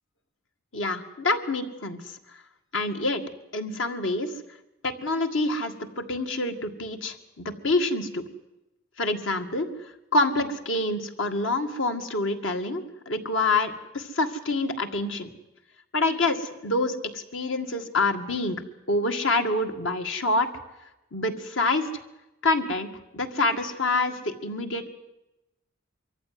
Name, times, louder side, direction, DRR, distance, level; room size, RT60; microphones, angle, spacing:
voice 1, 0.7-2.2 2.7-3.2 3.5-4.3 4.8-8.2 9.0-9.7 10.1-15.3 15.9-18.6 18.9-20.5 21.1-21.9 22.4-22.9 23.1-24.9, left 2 dB, 70° left, 6 dB, 2.0 m, -26 dB
23.5 x 14.5 x 9.5 m, 0.98 s
head